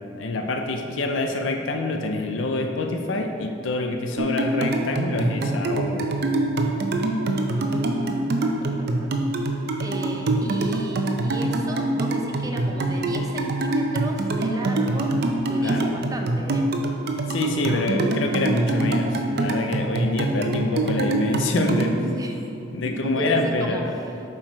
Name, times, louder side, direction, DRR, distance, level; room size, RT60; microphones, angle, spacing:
voice 1, 0.2-6.1 15.6-15.8 17.3-22.1 22.7-23.9, left 2 dB, 90° left, 4 dB, 0.5 m, -26 dB
sound 1, 4.2-22.0, right 2 dB, 60° right, 0.6 m, -25 dB
voice 2, 7.3-9.1 9.8-15.2 15.4-16.7 17.6-17.9 22.2-22.4 23.0-23.8 24.1-24.2, right 1 dB, 20° right, 1 dB, 0.6 m, -34 dB
7.4 x 4.6 x 4.5 m, 2.8 s
head